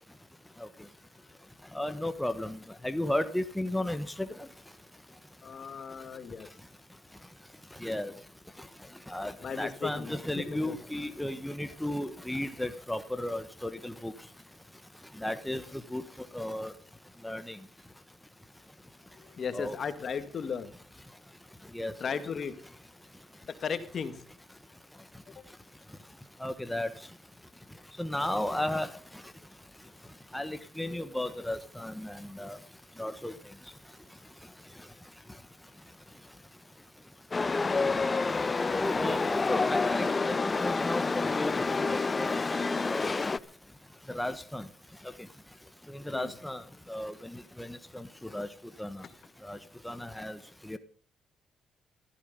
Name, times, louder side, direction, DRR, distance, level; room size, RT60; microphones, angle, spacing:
voice 1, 1.7-2.6 2.8-4.0 7.8-8.1 9.1-14.1 15.2-15.6 15.9-16.0 16.3-16.7 17.2-17.6 19.5-19.8 21.7-22.2 26.4-26.9 28.0-28.9 30.3-32.6 33.0-33.3 38.8-40.3 40.6-42.3 42.8-43.1 44.1-44.6 46.1-46.6 46.9-47.3 47.6-48.1 48.3-48.5 48.8-49.0 49.4-49.6 49.8-50.4 50.7-50.8, left 1 dB, 5° left, 10 dB, 1.2 m, -34 dB
voice 2, 5.4-6.5 9.4-10.2 10.6-10.7 19.1-20.7 22.0-22.6 23.6-24.2 46.1-46.3, left 6 dB, 50° left, 11 dB, 2.1 m, -36 dB
Chatter / Subway metro underground, 37.3-43.4, left 4 dB, 30° left, 0.7 m, -28 dB
15.5 x 14.0 x 5.3 m, 0.43 s
cardioid pair, 90°, 0 cm